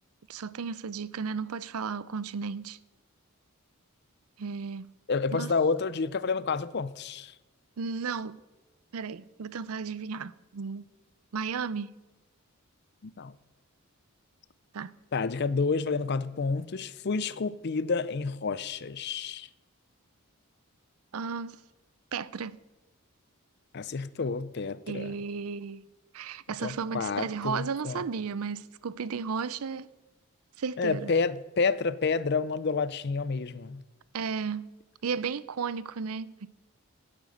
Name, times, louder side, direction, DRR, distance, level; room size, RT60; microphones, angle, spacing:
voice 1, 0.3-2.8 4.4-4.9 5.3-5.5 7.8-8.4 8.9-10.9 11.3-11.9 14.7-14.9 21.1-21.6 22.1-22.6 24.9-25.8 26.1-29.9 30.6-31.2 34.1-34.7 35.0-36.5, right 5 dB, 80° right, 0.5 m, -34 dB
voice 2, 5.1-7.3 13.0-13.3 15.1-19.5 23.7-25.1 26.6-28.0 30.8-33.8, left 4 dB, 50° left, 0.5 m, -29 dB
10.5 x 8.8 x 7.9 m
head